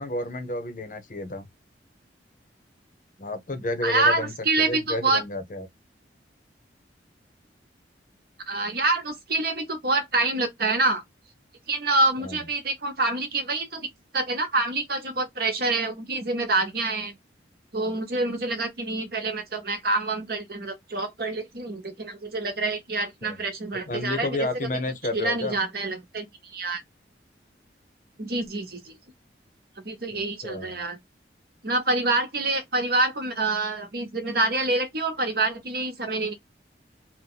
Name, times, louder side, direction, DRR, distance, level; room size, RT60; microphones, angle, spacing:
voice 1, 0.0-1.5 3.2-4.3 4.6-5.7 12.2-12.4 23.2-23.4 23.9-25.6 30.1-30.8, left 2 dB, 45° left, 0.7 m, -31 dB
voice 2, 3.8-5.2 8.5-11.0 11.7-13.9 14.1-17.1 17.7-24.5 25.1-26.3 26.5-26.8 28.2-28.9 29.8-31.0 31.6-36.3, right 2 dB, 55° right, 0.9 m, -26 dB
2.8 x 2.1 x 3.8 m
head